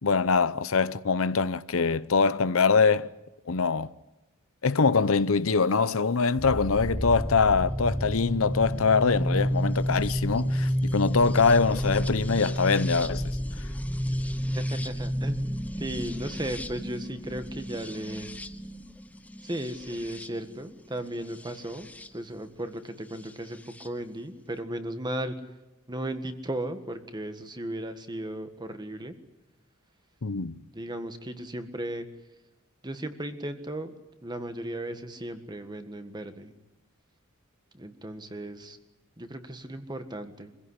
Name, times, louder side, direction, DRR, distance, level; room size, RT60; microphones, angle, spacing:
voice 1, 0.0-3.1 3.5-3.9 4.6-13.4 30.2-30.5, left 4 dB, 70° left, 0.8 m, -23 dB
sound 1, 6.4-22.1 23.3-23.9, equal, 5° left, 0.9 m, -31 dB
voice 2, 14.5-15.4 15.8-18.3 19.4-25.3 25.9-29.1 30.7-32.1 32.8-33.9 34.2-36.5 37.7-38.8 39.2-40.5, right 1 dB, 20° right, 1.7 m, -36 dB
25.0 x 16.0 x 9.8 m
head